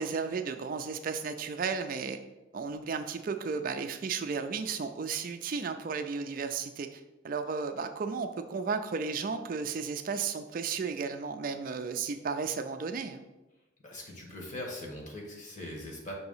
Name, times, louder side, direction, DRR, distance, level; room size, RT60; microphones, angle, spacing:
voice 1, 0.0-2.2 2.5-13.2, right 5 dB, 45° right, 7 dB, 0.4 m, -34 dB
voice 2, 13.8-16.1, left 1 dB, 40° left, 0 dB, 1.3 m, -41 dB
6.0 x 2.9 x 5.5 m, 1.0 s
head